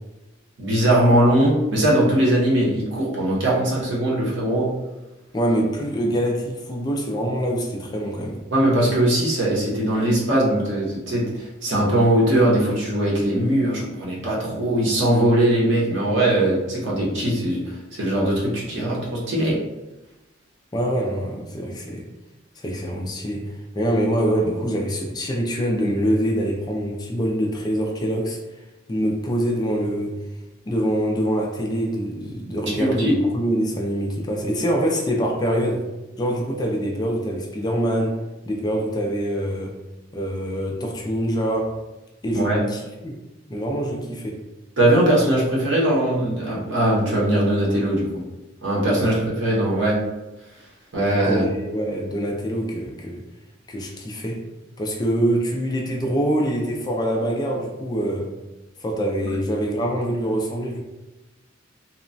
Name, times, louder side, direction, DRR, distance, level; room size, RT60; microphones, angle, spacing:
voice 1, 0.6-4.7 8.5-19.6 32.8-33.1 42.3-42.6 44.8-48.2 48.6-50.0 50.9-51.4 59.2-59.4, right 1 dB, 65° right, -5 dB, 0.9 m, -20 dB
voice 2, 5.3-8.4 20.7-22.1 22.6-28.4 28.9-30.2 30.7-35.9 36.2-38.2 38.5-39.8 40.1-41.8 42.2-43.2 43.5-44.4 48.9-49.1 50.9-53.2 53.7-54.5 54.8-58.3 58.8-60.8, equal, 20° left, 0 dB, 0.3 m, -25 dB
2.9 x 2.1 x 2.5 m, 1.0 s
head